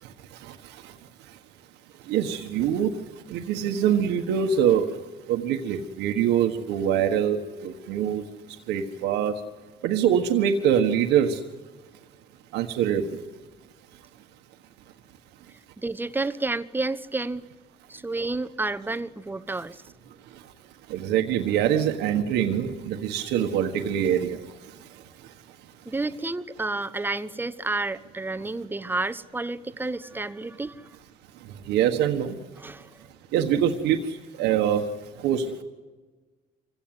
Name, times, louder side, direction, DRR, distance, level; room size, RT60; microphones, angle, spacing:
voice 1, 0.0-1.4 2.0-5.0 5.3-9.4 9.8-11.4 12.5-13.2 20.2-20.5 20.9-25.7 31.3-32.4 33.3-35.6, right 9 dB, 90° right, 5 dB, 1.6 m, -25 dB
voice 2, 15.8-17.5 17.9-19.8 25.9-30.9 32.6-32.9, right 2 dB, 10° right, 12 dB, 0.9 m, -30 dB
26.0 x 16.5 x 9.6 m, 1.3 s
cardioid pair, 110°, 17 cm